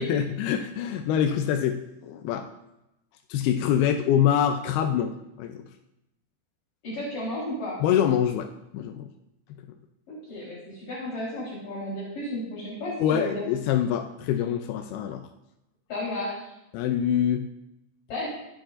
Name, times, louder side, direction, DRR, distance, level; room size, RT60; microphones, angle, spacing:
voice 1, 0.0-2.4 3.3-5.6 7.8-8.5 8.7-9.1 13.0-15.2 16.7-17.5, left 9 dB, 90° left, 5 dB, 2.6 m, -25 dB
voice 2, 6.8-7.8 10.1-13.4 15.9-16.5 18.1-18.3, left 1 dB, 55° left, -7 dB, 5.4 m, -33 dB
24.0 x 8.9 x 2.6 m, 0.90 s
omnidirectional pair, 4.4 m